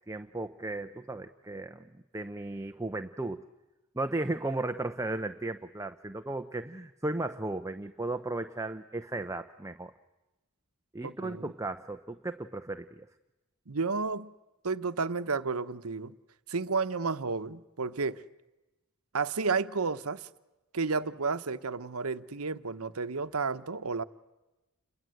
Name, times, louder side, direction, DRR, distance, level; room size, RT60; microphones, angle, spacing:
voice 1, 0.1-3.4 3.9-9.9 10.9-13.0, right 2 dB, 15° right, 0.8 m, -35 dB
voice 2, 11.0-11.5 13.7-14.3 14.6-16.1 16.5-18.2 19.1-20.3 20.7-24.0, right 4 dB, 80° right, 1.0 m, -32 dB
29.5 x 22.5 x 7.9 m
head